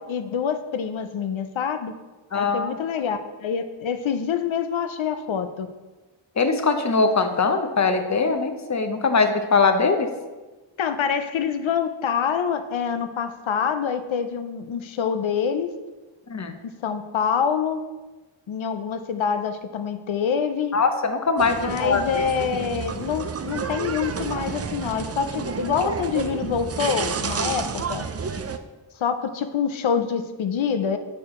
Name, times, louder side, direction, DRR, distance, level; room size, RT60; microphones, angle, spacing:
voice 1, 0.1-1.9 2.3-5.7 10.8-15.7 16.6-17.8 18.5-20.8 21.6-28.1 29.0-31.0, left 7 dB, 80° left, 9 dB, 0.6 m, -26 dB
voice 2, 2.3-2.8 6.4-10.1 16.3-16.5 20.7-22.2, left 4 dB, 40° left, 7 dB, 0.6 m, -21 dB
sound 1, 21.4-28.6, right 6 dB, 35° right, 0.4 m, -30 dB
6.4 x 4.5 x 3.7 m, 1.2 s
wide cardioid pair, 40°, 46 cm